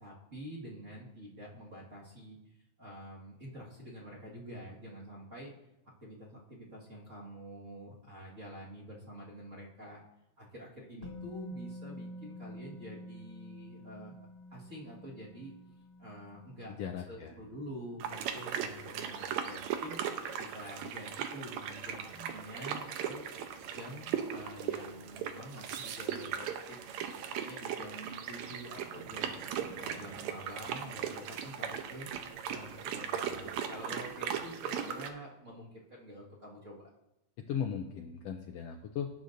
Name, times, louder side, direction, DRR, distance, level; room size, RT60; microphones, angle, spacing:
voice 1, 0.0-2.4 2.8-5.5 6.0-10.0 10.4-14.1 14.5-15.5 16.0-16.7 17.1-23.2 23.6-29.4 29.8-32.1 32.4-36.9, equal, 30° right, -5 dB, 1.6 m, -47 dB
Musical instrument, 11.0-18.9 19.2-19.4, left 1 dB, 10° left, 1.6 m, -49 dB
voice 2, 16.8-17.4 37.4-39.1, left 8 dB, 80° left, 5 dB, 1.5 m, -37 dB
sound 1, 18.0-35.1, right 8 dB, 75° right, 2.0 m, -38 dB
18.0 x 7.9 x 2.6 m, 0.91 s
omnidirectional pair, 3.3 m